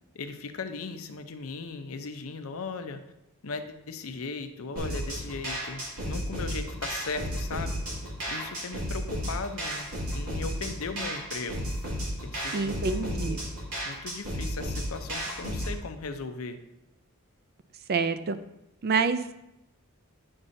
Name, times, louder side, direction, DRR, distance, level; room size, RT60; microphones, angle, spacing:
voice 1, 0.1-3.0 3.4-7.8 8.3-11.7 12.2-13.4 13.8-16.6, left 4 dB, 75° left, 7 dB, 0.6 m, -37 dB
sound 1, 4.8-15.8, equal, 85° right, 2.3 m, -33 dB
voice 2, 12.5-13.4 17.9-18.4 18.8-19.3, right 4 dB, 45° right, 11 dB, 0.4 m, -27 dB
8.7 x 5.4 x 2.6 m, 0.88 s
head